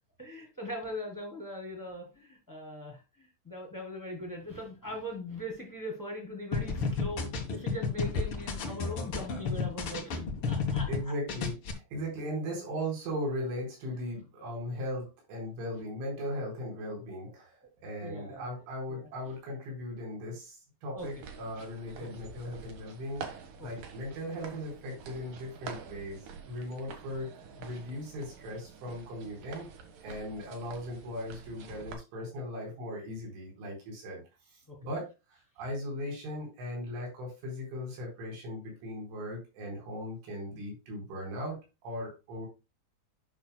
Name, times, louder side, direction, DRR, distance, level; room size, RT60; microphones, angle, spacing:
voice 1, 0.2-10.9 18.0-18.5 18.9-19.3 20.9-21.1 22.0-22.1 27.6-27.7 34.7-34.8, left 1 dB, 10° left, 1 dB, 1.2 m, -40 dB
sound 1, 6.5-11.0 11.3-11.7, left 5 dB, 85° left, 1.2 m, -32 dB
voice 2, 10.9-17.6 17.8-26.2 26.5-27.3 27.6-29.7 30.0-34.2 34.8-41.6 41.8-42.5, equal, 80° right, -1 dB, 6.7 m, -38 dB
sound 2, 21.0-31.9, right 6 dB, 60° right, 2.5 m, -47 dB
12.0 x 6.2 x 2.2 m, 0.27 s
omnidirectional pair, 5.4 m